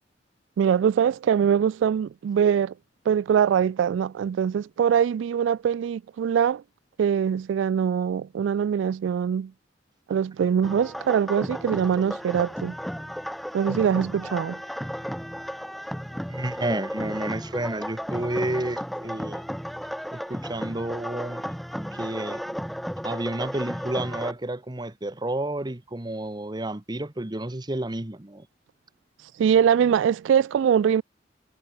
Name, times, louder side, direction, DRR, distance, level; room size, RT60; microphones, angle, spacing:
voice 1, 0.6-2.7 3.1-6.6 7.0-9.5 10.1-12.7 13.5-14.6 29.4-31.0, right 8 dB, 85° right, 0.3 m, -23 dB
sound 1, 10.6-24.3, equal, ahead, 0.7 m, -34 dB
voice 2, 16.3-19.4 20.1-21.4 21.9-22.6 23.0-28.5, right 1 dB, 25° right, 1.1 m, -30 dB
head